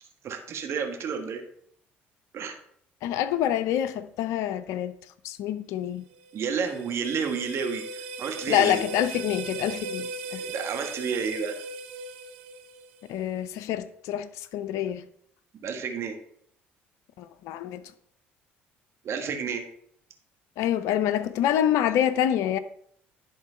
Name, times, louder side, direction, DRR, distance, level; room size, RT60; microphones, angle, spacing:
voice 1, 0.2-1.4 2.3-2.6 6.3-8.8 10.3-11.5 15.6-16.1 19.0-19.6, right 6 dB, 55° right, 1.5 m, -31 dB
voice 2, 3.0-5.0 5.2-6.0 8.5-10.4 13.1-15.0 17.2-17.8 20.6-22.6, left 11 dB, 70° left, 0.6 m, -26 dB
sound 1, 6.1-13.2, right 3 dB, 85° right, 0.6 m, -38 dB
11.0 x 3.8 x 5.5 m
hypercardioid pair, 65°, 5 cm